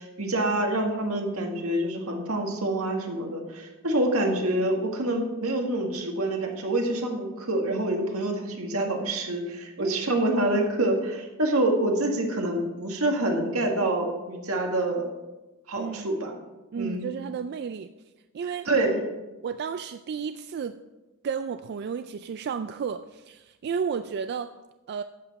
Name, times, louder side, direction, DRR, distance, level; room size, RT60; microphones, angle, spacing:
voice 1, 0.0-15.1 15.7-16.3 16.8-17.1 18.7-19.0, right 1 dB, 85° right, 2 dB, 1.8 m, -26 dB
voice 2, 9.8-10.3 15.7-16.3 16.7-17.9 18.3-18.7 19.4-20.8 21.2-24.5 24.9-25.0, right 6 dB, 50° right, 10 dB, 0.3 m, -32 dB
11.5 x 8.0 x 4.1 m, 1.1 s
head